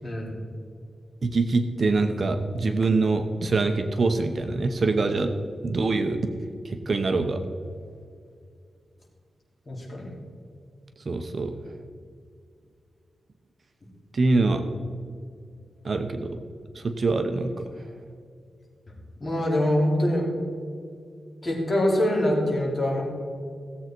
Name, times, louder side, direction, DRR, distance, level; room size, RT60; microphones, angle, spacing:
voice 1, 0.0-0.3 9.7-10.1 19.2-20.2 21.4-23.0, left 1 dB, 30° left, -3 dB, 3.3 m, -24 dB
voice 2, 1.2-5.3 5.6-6.2 6.6-7.4 11.1-11.5 14.1-14.6 15.8-16.3 16.7-17.5, right 3 dB, 45° right, 6 dB, 0.8 m, -24 dB
16.5 x 7.9 x 4.5 m, 2.3 s
wide cardioid pair, 130°, 0 cm